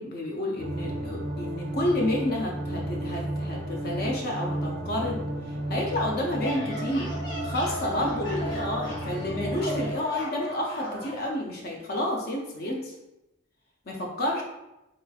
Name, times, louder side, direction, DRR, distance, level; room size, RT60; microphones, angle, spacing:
voice 1, 0.0-5.2 5.7-7.1 7.4-12.9 13.9-14.4, left 1 dB, 50° left, -1 dB, 0.6 m, -30 dB
sound 1, 0.6-9.9, right 1 dB, 50° right, 0.5 m, -33 dB
sound 2, 6.4-11.2, equal, 75° left, 1.4 m, -36 dB
3.9 x 3.0 x 2.3 m, 0.93 s
head